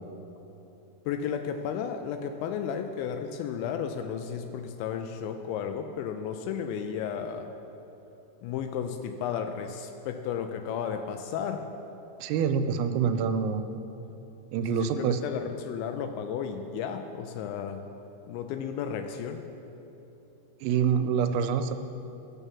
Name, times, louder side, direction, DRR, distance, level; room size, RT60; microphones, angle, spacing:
voice 1, 1.1-7.5 8.4-11.7 14.6-17.8 18.3-19.5, left 7 dB, 85° left, 7 dB, 2.7 m, -33 dB
voice 2, 12.2-13.6 14.5-15.2 20.6-21.8, right 7 dB, 90° right, 8 dB, 3.3 m, -26 dB
14.0 x 7.2 x 7.1 m, 3.0 s
omnidirectional pair, 5.8 m